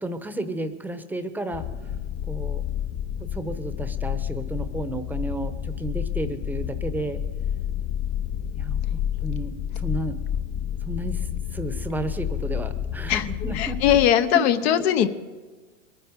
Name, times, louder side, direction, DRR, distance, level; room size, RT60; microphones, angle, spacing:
voice 1, 0.0-1.6 2.3-2.6 3.3-7.2 8.5-10.2 10.9-14.0 14.3-14.7, right 2 dB, 5° right, 10 dB, 0.9 m, -32 dB
sound 1, 1.5-14.1, left 9 dB, 25° left, 0.5 m, -30 dB
voice 2, 13.5-15.1, left 11 dB, 55° left, 9 dB, 0.9 m, -20 dB
22.0 x 9.7 x 5.2 m, 1.4 s
hypercardioid pair, 120°, 37 cm